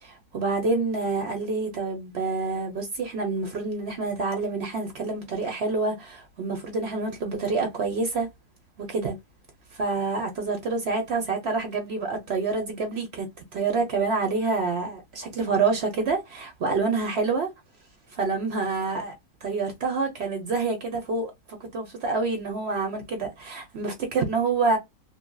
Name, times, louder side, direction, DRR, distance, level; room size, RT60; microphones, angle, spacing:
voice 1, 0.0-8.3 8.8-9.2 9.7-13.3 13.5-17.5 18.1-19.1 19.4-21.3 21.7-24.8, right 4 dB, 55° right, 0.7 m, -27 dB
2.7 x 2.7 x 2.2 m
omnidirectional pair, 1.8 m